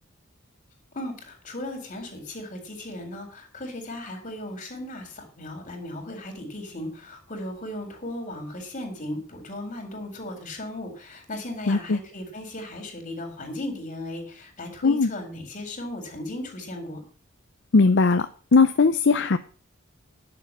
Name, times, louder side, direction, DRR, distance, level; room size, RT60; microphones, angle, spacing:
voice 1, 0.9-17.0, left 1 dB, 40° left, 4 dB, 4.2 m, -36 dB
voice 2, 11.7-12.0 14.8-15.1 17.7-18.3 18.5-19.4, left 4 dB, 60° left, 10 dB, 0.6 m, -19 dB
11.0 x 6.8 x 7.3 m, 0.41 s
head